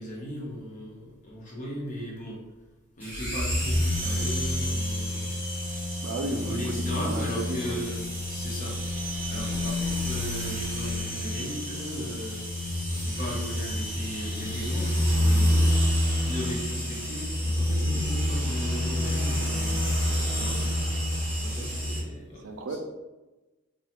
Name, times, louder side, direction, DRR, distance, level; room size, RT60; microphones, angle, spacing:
voice 1, 0.0-2.4 3.0-5.4 6.2-8.8 9.1-12.5 12.9-15.8 16.2-20.0 20.3-20.8 21.4-22.8, equal, 40° left, -5 dB, 0.8 m, -37 dB
sound 1, 3.0-22.0, left 1 dB, 10° right, 1.1 m, -28 dB
voice 2, 6.0-7.8 22.4-22.8, right 2 dB, 70° right, 5 dB, 0.3 m, -33 dB
2.3 x 2.2 x 2.9 m, 1.1 s
head